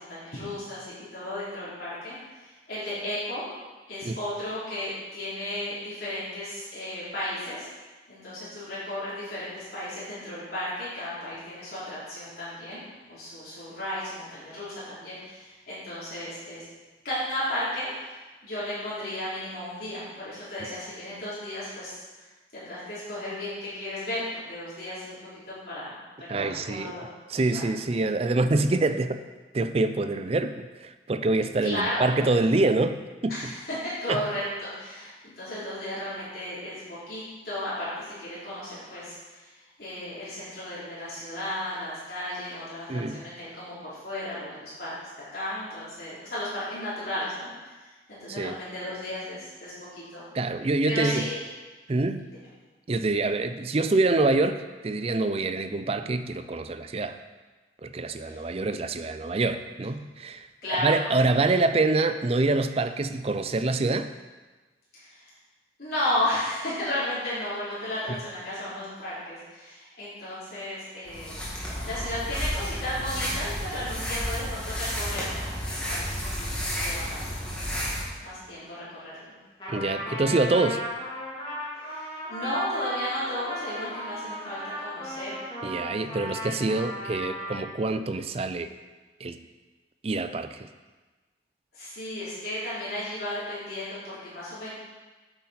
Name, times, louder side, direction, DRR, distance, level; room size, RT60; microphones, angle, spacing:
voice 1, 0.0-3.4 3.9-7.7 8.1-12.8 13.1-16.6 17.0-18.1 18.4-22.0 22.5-25.2 25.7-26.0 26.3-27.6 27.9-28.0 31.6-32.0 33.3-39.5 39.8-44.9 45.3-47.8 48.1-50.2 50.8-51.3 52.3-52.4 58.2-58.4 60.6-61.5 64.9-65.2 65.8-71.4 71.8-77.3 78.2-79.4 81.8-85.4 91.7-94.7, left 1 dB, 55° left, -11 dB, 3.2 m, -34 dB
voice 2, 26.3-26.9 27.3-29.2 29.5-33.5 34.1-34.3 42.9-43.2 48.3-48.6 50.3-51.2 51.9-52.3 52.9-57.2 57.8-64.1 79.7-80.8 85.6-88.7 89.2-89.4 90.0-90.7, right 2 dB, 35° right, 10 dB, 0.4 m, -26 dB
sound 1, 71.0-78.0, equal, 5° left, 1.7 m, -32 dB
Trumpet, 79.6-87.7, equal, 25° left, 2.9 m, -35 dB
8.5 x 8.0 x 4.2 m, 1.3 s
head